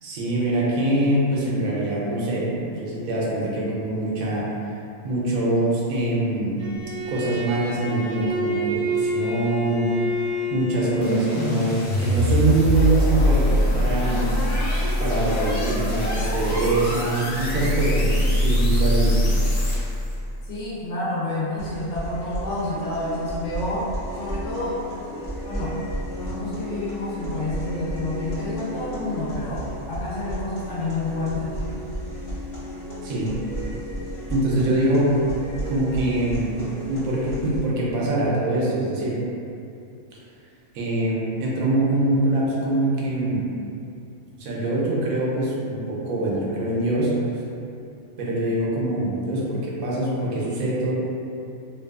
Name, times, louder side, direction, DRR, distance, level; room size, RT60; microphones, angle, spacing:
voice 1, 0.0-4.5 5.0-6.6 7.1-10.2 10.5-14.3 15.0-19.4 33.0-33.3 34.3-35.1 35.7-36.6 36.9-39.2 40.7-43.4 44.4-47.2 48.2-50.9, right 1 dB, 90° right, -5 dB, 1.0 m, -24 dB
Bowed string instrument, 6.6-11.4, equal, 60° right, 0.7 m, -28 dB
sound 1, 11.0-20.1, equal, 85° left, 0.4 m, -22 dB
voice 2, 20.5-24.9 25.4-25.8 26.1-31.6, left 2 dB, 70° left, -8 dB, 0.9 m, -29 dB
sound 2, 21.6-37.6, equal, 40° left, 0.6 m, -33 dB
2.6 x 2.2 x 2.3 m, 2.7 s
omnidirectional pair, 1.4 m